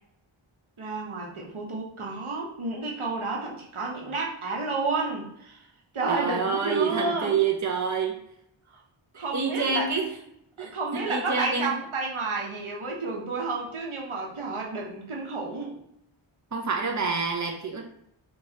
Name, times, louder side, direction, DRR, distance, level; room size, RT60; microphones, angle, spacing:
voice 1, 0.8-5.7 5.9-7.4 8.7-8.8 9.1-9.9 10.6-15.8, right 3 dB, 85° right, -1 dB, 0.9 m, -31 dB
voice 2, 6.1-8.2 9.1-10.1 10.6-11.7 16.5-17.8, right 5 dB, 35° right, 2 dB, 0.7 m, -27 dB
4.4 x 3.0 x 2.8 m, 0.74 s
wide cardioid pair, 45°, 49 cm